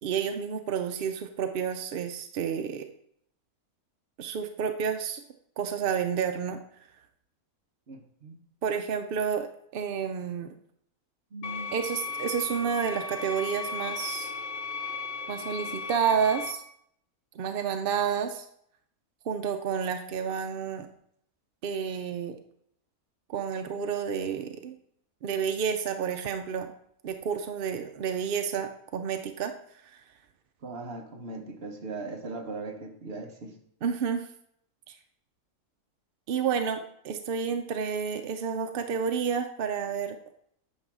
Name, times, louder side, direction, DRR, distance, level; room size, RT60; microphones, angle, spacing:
voice 1, 0.0-2.9 4.2-5.2 5.6-6.6 8.6-10.5 11.7-14.3 15.3-16.6 17.3-18.5 19.2-20.9 21.6-22.4 23.3-24.7 25.2-26.7 27.0-29.5 29.8-30.0 33.8-34.3 34.9-35.0 36.3-40.2, right 7 dB, 65° right, 6 dB, 0.5 m, -30 dB
voice 2, 7.9-8.4 11.3-11.7 30.6-33.6, right 3 dB, 45° right, 4 dB, 1.1 m, -39 dB
sound 1, 11.4-16.5, left 4 dB, 55° left, 0.6 m, -36 dB
9.6 x 3.3 x 6.0 m, 0.69 s
omnidirectional pair, 1.6 m